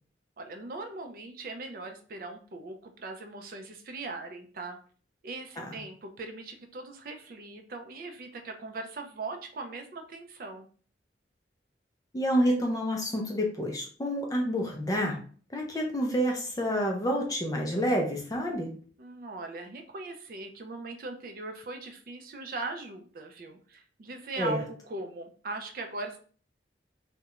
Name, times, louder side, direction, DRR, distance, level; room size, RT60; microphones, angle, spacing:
voice 1, 0.4-4.8 5.2-10.7 19.0-26.2, right 3 dB, 50° right, 5 dB, 0.4 m, -40 dB
voice 2, 12.1-15.2 15.5-18.7 24.4-24.6, equal, 20° left, 2 dB, 0.4 m, -28 dB
2.4 x 2.1 x 2.8 m, 0.43 s
head